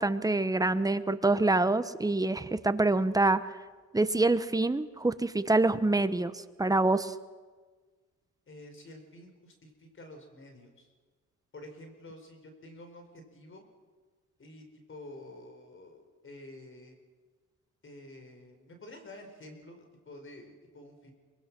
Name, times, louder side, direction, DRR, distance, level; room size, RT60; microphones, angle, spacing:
voice 1, 0.0-3.4 3.9-7.1, right 2 dB, 10° right, 12 dB, 1.0 m, -26 dB
voice 2, 8.5-10.9 11.5-13.6 14.4-17.0 17.8-21.1, left 1 dB, 40° left, 5 dB, 4.6 m, -49 dB
24.0 x 21.5 x 6.1 m, 1.4 s
cardioid pair, 90°, 30 cm